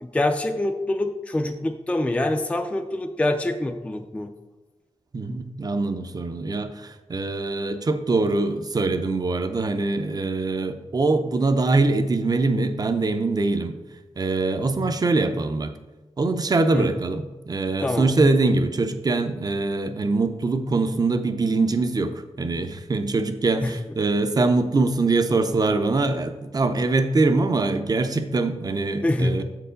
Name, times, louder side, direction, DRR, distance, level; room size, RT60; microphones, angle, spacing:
voice 1, 0.0-4.3 16.7-16.9 17.8-18.1 23.6-23.7 29.0-29.4, left 1 dB, 10° left, 6 dB, 0.4 m, -25 dB
voice 2, 5.1-13.7 14.2-15.7 16.2-29.4, right 3 dB, 35° right, 9 dB, 0.5 m, -23 dB
7.4 x 4.6 x 5.0 m, 1.1 s
wide cardioid pair, 140°, 11 cm